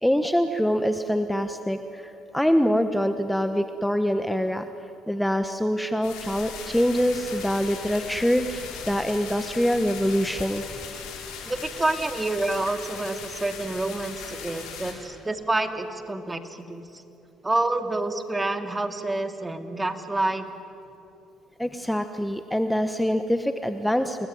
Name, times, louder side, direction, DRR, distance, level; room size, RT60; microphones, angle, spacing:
voice 1, 0.0-4.7 5.1-10.6 21.6-24.3, equal, 5° left, 9 dB, 1.3 m, -24 dB
sound 1, 6.0-14.9, left 6 dB, 80° left, 5.6 m, -38 dB
voice 2, 11.4-16.8 17.4-20.5, right 2 dB, 20° right, 7 dB, 2.6 m, -28 dB
29.0 x 20.5 x 9.5 m, 3.0 s
supercardioid pair, 65°, 0 cm